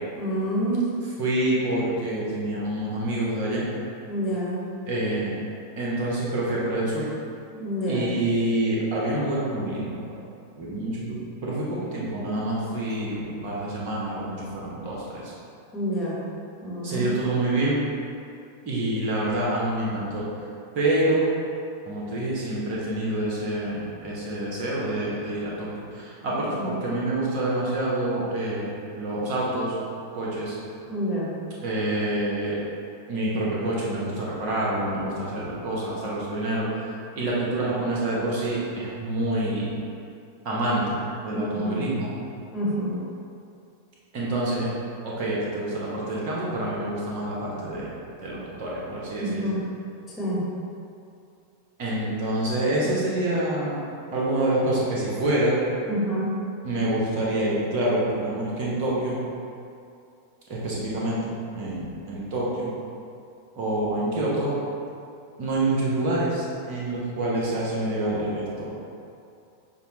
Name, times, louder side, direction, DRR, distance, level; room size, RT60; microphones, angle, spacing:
voice 1, 0.1-0.9 4.1-4.6 7.5-8.0 15.7-16.3 16.6-17.1 26.6-26.7 30.9-31.4 41.3-41.8 42.5-43.0 49.2-49.6 50.2-50.5 55.9-56.4, right 1 dB, 15° left, -7 dB, 1.2 m, -27 dB
voice 2, 1.2-3.6 4.9-5.4 5.8-7.1 7.9-10.1 10.6-15.3 16.8-17.8 18.6-20.3 20.7-21.3 21.9-29.8 30.1-30.5 31.6-32.6 33.1-36.7 37.1-39.8 40.4-41.0 41.2-42.1 44.1-44.7 45.0-47.9 48.2-49.4 51.8-53.8 54.1-55.5 56.6-59.2 60.5-62.7 63.5-64.5 65.4-68.7, right 1 dB, 45° right, -6 dB, 1.1 m, -27 dB
6.6 x 2.2 x 3.0 m, 2.5 s
figure-of-eight pair, 90°, 0 cm